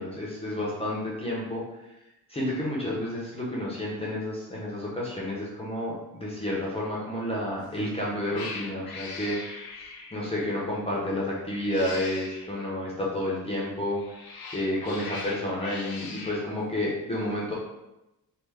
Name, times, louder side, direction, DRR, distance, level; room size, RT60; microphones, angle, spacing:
voice 1, 0.0-1.6 2.3-14.2 14.5-17.5, left 1 dB, 15° left, -6 dB, 0.5 m, -30 dB
Cat, 7.6-7.9 8.3-10.3 11.4-12.5 13.8-16.4, left 3 dB, 70° left, 0.6 m, -40 dB
3.3 x 2.1 x 3.3 m, 0.95 s
wide cardioid pair, 155°, 37 cm